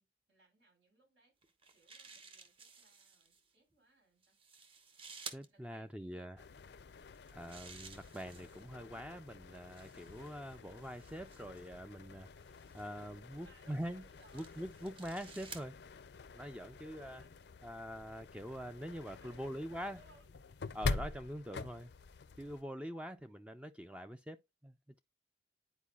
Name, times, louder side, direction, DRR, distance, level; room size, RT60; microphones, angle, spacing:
voice 1, 0.0-1.3 1.7-4.4 5.5-6.3 13.3-14.7 17.2-17.3 19.2-20.3, right 2 dB, 90° right, 5.3 m, -67 dB
sound 1, 1.4-3.4 4.2-5.5 7.1-8.7 9.6-11.7 12.5-12.9 13.7-15.7, right 5 dB, 30° right, 0.8 m, -54 dB
voice 2, 5.3-6.4 7.4-12.3 12.7-14.0 14.3-15.8 16.3-17.2 17.6-20.0 20.7-21.9 22.4-25.0, equal, 5° right, 0.3 m, -44 dB
sound 2, 6.4-22.6, left 4 dB, 70° left, 0.5 m, -46 dB
10.0 x 4.6 x 2.3 m
head